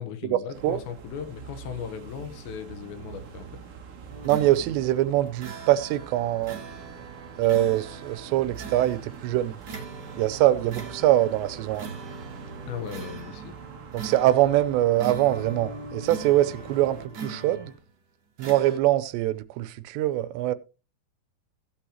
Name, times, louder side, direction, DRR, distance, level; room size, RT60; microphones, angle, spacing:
voice 1, 0.0-3.5 12.7-13.6, left 8 dB, 85° left, 3.5 m, -37 dB
sound 1, 0.5-17.1, right 6 dB, 65° right, 1.6 m, -45 dB
sound 2, 4.1-17.9 18.4-18.8, right 4 dB, 35° right, 1.9 m, -41 dB
voice 2, 4.2-6.6 7.4-9.6 10.2-11.9 13.9-17.7 18.4-20.6, right 14 dB, 90° right, 2.9 m, -23 dB
15.5 x 8.7 x 3.0 m
omnidirectional pair, 4.9 m